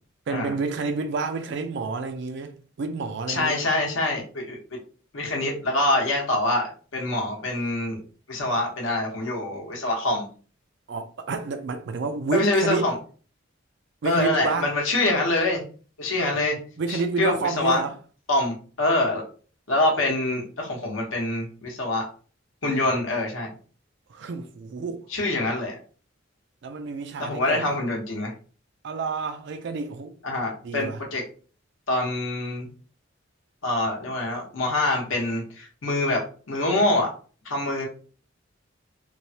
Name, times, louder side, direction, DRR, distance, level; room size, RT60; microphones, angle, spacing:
voice 1, 0.3-3.7 10.9-12.9 14.0-14.7 16.8-17.9 24.1-25.1 26.6-27.8 28.8-30.1 30.6-31.0, right 4 dB, 60° right, 0.4 m, -29 dB
voice 2, 3.3-4.6 5.1-8.0 8.3-10.2 12.3-12.9 14.0-15.6 16.0-16.6 16.9-17.8 18.3-19.2 19.7-22.1 22.6-23.5 25.1-25.7 27.2-28.3 30.2-31.2 31.9-32.7 33.6-37.1 37.4-37.9, left 2 dB, 80° left, 1.0 m, -25 dB
3.1 x 2.1 x 2.7 m
head